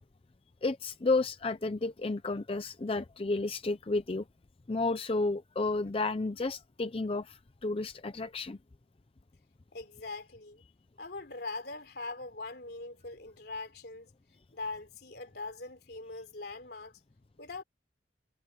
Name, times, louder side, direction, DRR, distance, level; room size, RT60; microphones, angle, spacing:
voice 1, 0.6-4.2 4.7-8.6, left 3 dB, 35° left, 0.5 m, -32 dB
voice 2, 9.7-10.6 11.0-14.1 14.5-17.0 17.4-17.6, left 3 dB, 65° left, 3.5 m, -42 dB
head